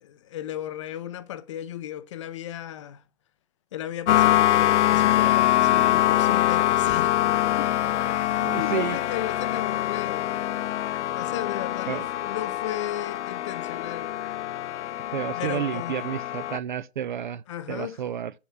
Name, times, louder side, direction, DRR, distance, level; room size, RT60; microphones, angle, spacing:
voice 1, 0.0-3.0 3.7-7.2 7.6-7.7 8.1-10.3 11.1-14.1 15.3-16.0 17.5-18.0, left 11 dB, 25° left, 0.5 m, -35 dB
sound 1, 4.1-16.6, left 13 dB, 75° left, 0.5 m, -24 dB
voice 2, 5.7-6.1 8.4-9.0 11.9-12.1 15.1-18.3, right 9 dB, 45° right, 0.4 m, -31 dB
7.1 x 6.0 x 7.2 m
hypercardioid pair, 140°, 35 cm